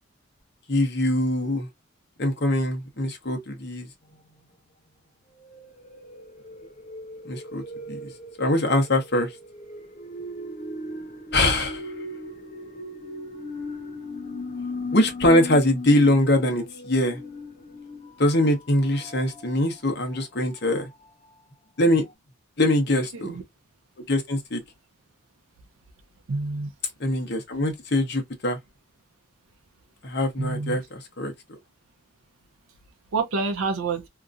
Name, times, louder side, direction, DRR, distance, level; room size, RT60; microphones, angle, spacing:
voice 1, 0.7-1.7 2.2-3.9 7.2-7.6 7.9-8.1 8.4-9.3 11.3-11.8 14.9-17.2 18.2-20.9 21.8-22.0 22.6-23.4 24.1-24.6 27.0-28.6 30.0-31.3, left 1 dB, 50° left, 0.9 m, -23 dB
sound 1, 4.1-4.3 5.4-21.3 21.8-21.9 22.1-22.2, left 2 dB, 35° left, 0.5 m, -38 dB
voice 2, 26.3-26.7 30.4-30.8 33.1-34.1, right 4 dB, 90° right, 0.6 m, -27 dB
2.8 x 2.5 x 2.4 m
head